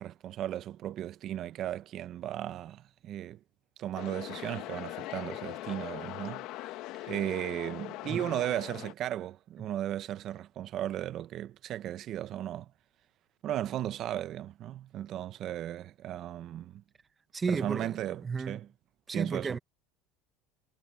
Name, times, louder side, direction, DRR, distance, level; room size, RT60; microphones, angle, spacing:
voice 1, 0.0-3.4 3.8-6.5 7.1-12.7 13.4-16.8 17.5-18.2 18.5-18.7 19.1-19.6, right 12 dB, 45° right, 0.9 m, -36 dB
sound 1, 3.9-8.9, left 17 dB, 60° left, 1.5 m, -41 dB
voice 2, 17.3-18.6 19.1-19.6, right 5 dB, 20° right, 1.5 m, -33 dB
supercardioid pair, 115°, 0 cm